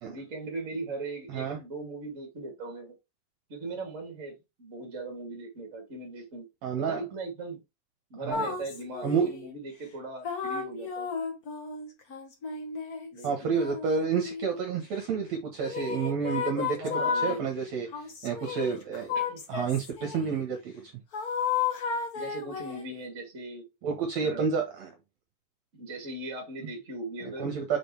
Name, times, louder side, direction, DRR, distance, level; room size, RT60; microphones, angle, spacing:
voice 1, 0.0-3.0 3.5-6.5 6.8-7.6 8.1-11.1 13.1-13.6 16.8-17.5 19.1-19.4 22.1-23.7 24.2-24.5 25.7-27.5, right 2 dB, 25° right, 2.2 m, -39 dB
voice 2, 1.3-1.6 6.6-7.0 8.2-8.4 9.0-9.3 13.2-16.8 17.2-17.9 18.2-19.1 19.5-20.7 23.8-24.9 27.2-27.8, right 6 dB, 60° right, 2.1 m, -29 dB
sound 1, 8.3-9.5 10.2-14.6 15.6-17.4 17.9-20.3 21.1-22.9, left 6 dB, 80° left, 0.8 m, -33 dB
6.6 x 5.1 x 3.3 m
omnidirectional pair, 3.8 m